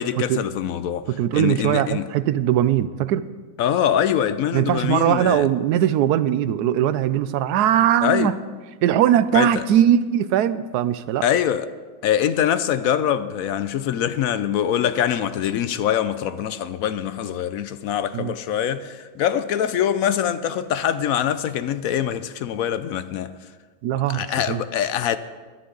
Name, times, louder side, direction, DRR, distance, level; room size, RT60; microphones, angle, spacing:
voice 1, 0.0-1.1 1.3-2.0 3.6-5.4 8.0-8.3 9.3-9.6 11.2-11.7 12.0-23.3 24.1-25.2, left 9 dB, 70° left, 1.0 m, -23 dB
voice 2, 1.1-3.2 4.5-8.3 8.8-11.2 18.1-18.3 23.8-24.6, right 11 dB, 85° right, 1.1 m, -20 dB
21.0 x 10.5 x 3.9 m
omnidirectional pair, 1.6 m